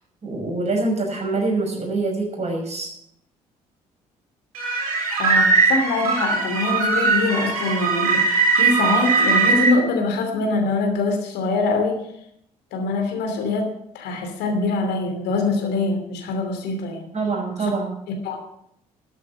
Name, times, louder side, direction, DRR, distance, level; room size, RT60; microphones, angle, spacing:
voice 1, 0.2-2.9 17.1-18.0, right 3 dB, 35° right, 1 dB, 5.8 m, -25 dB
sound 1, 4.5-9.7, right 4 dB, 80° right, 3.6 m, -20 dB
voice 2, 5.2-12.0 12.7-17.1 17.6-17.7 18.1-18.4, left 3 dB, 65° left, 4 dB, 2.8 m, -24 dB
13.0 x 8.2 x 7.6 m, 0.73 s
figure-of-eight pair, 45°, 19 cm